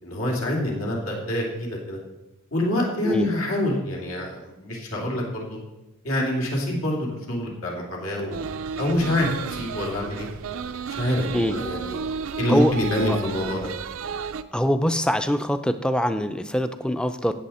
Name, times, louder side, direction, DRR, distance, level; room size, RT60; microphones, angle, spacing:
voice 1, 0.0-2.0 2.5-5.6 6.0-8.5 8.8-10.3 11.0-12.0 12.4-13.7, left 1 dB, 80° left, -1 dB, 2.9 m, -26 dB
sound 1, 8.3-14.4, right 6 dB, 75° right, 0.5 m, -32 dB
voice 2, 14.5-17.3, equal, 5° left, 10 dB, 0.5 m, -23 dB
16.0 x 7.1 x 4.3 m, 1.0 s
head